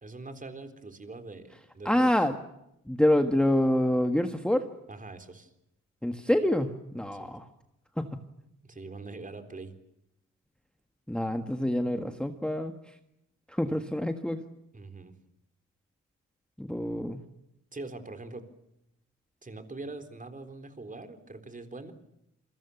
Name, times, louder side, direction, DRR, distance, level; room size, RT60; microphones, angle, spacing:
voice 1, 0.0-2.1 4.9-5.5 7.2-7.3 8.6-9.7 13.7-13.8 14.7-15.2 17.7-18.5 19.4-21.9, right 3 dB, 25° right, 7 dB, 3.9 m, -43 dB
voice 2, 1.9-2.3 2.9-4.7 6.0-7.5 8.0-8.2 11.1-13.0 13.5-14.4 16.6-17.2, left 1 dB, 5° left, 6 dB, 1.6 m, -27 dB
28.5 x 23.0 x 7.1 m, 0.83 s
cardioid pair, 100°, 31 cm